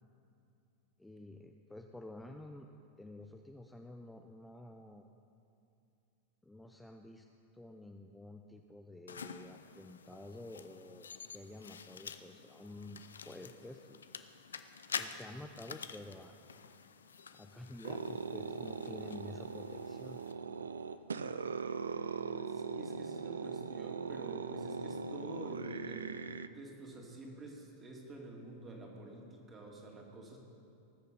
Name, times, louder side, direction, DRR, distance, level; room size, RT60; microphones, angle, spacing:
voice 1, 1.0-2.7 3.0-5.1 6.4-7.3 7.5-14.0 14.9-16.4 17.3-20.2, left 1 dB, 5° left, 3 dB, 0.6 m, -50 dB
sound 1, 9.1-20.3, left 6 dB, 85° left, 0.5 m, -48 dB
sound 2, 17.8-26.5, right 5 dB, 90° right, 0.4 m, -40 dB
voice 2, 22.3-26.2 26.5-30.4, right 2 dB, 25° right, -1 dB, 2.7 m, -49 dB
19.5 x 6.6 x 5.4 m, 2.7 s
hypercardioid pair, 100°, 0 cm